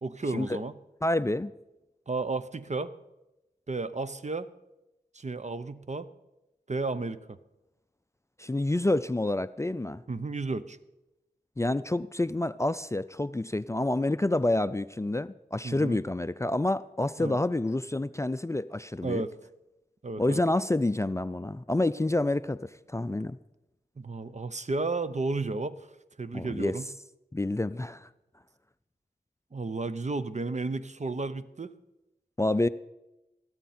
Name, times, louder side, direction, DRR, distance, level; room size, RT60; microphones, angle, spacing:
voice 1, 0.0-0.7 2.1-2.9 3.7-4.5 5.1-6.1 6.7-7.4 10.1-10.8 15.6-16.0 17.2-17.4 19.0-19.3 20.0-20.4 24.0-25.9 26.2-26.9 29.5-31.7, right 3 dB, 45° right, 13 dB, 0.7 m, -33 dB
voice 2, 1.0-1.5 8.4-10.0 11.6-19.2 20.2-23.4 26.3-26.7 27.3-28.1 32.4-32.7, left 2 dB, 15° left, 14 dB, 0.4 m, -28 dB
14.5 x 13.0 x 4.3 m, 0.96 s
cardioid pair, 40°, 17 cm